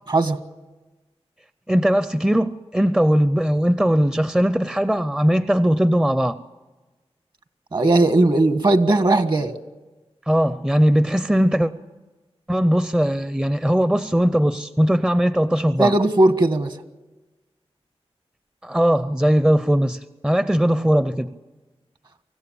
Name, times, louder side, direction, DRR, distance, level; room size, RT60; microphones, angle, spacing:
voice 1, 0.1-0.4 7.7-9.5 15.8-16.8, right 2 dB, 45° right, 1.5 m, -18 dB
voice 2, 1.7-6.4 10.3-11.7 12.5-15.9 18.6-21.3, equal, 5° right, 0.6 m, -19 dB
24.5 x 15.5 x 8.8 m
wide cardioid pair, 70°, 11 cm